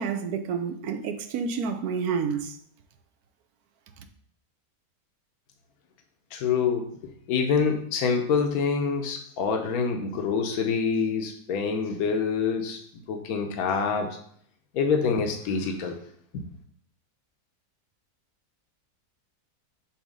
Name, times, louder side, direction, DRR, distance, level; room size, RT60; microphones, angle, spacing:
voice 1, 0.0-2.5, right 6 dB, 80° right, 1.1 m, -29 dB
voice 2, 6.3-6.8 7.3-12.8 13.1-14.1 14.7-15.9 16.3-16.4, left 5 dB, 75° left, 1.2 m, -26 dB
7.1 x 2.8 x 5.1 m
omnidirectional pair, 1.6 m